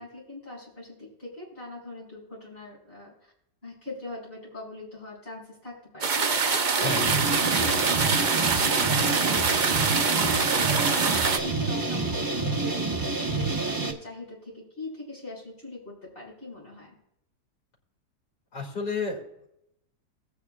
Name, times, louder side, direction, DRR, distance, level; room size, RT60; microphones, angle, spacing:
voice 1, 0.0-3.3 3.6-6.9 7.4-16.9, left 2 dB, 35° left, -4 dB, 5.4 m, -41 dB
sound 1, 6.0-11.4, right 5 dB, 45° right, 0.6 m, -24 dB
sound 2, 6.8-13.9, right 3 dB, 15° right, 0.8 m, -28 dB
voice 2, 18.5-19.5, left 4 dB, 85° left, -1 dB, 3.2 m, -32 dB
18.0 x 8.9 x 2.4 m, 0.77 s
omnidirectional pair, 1.8 m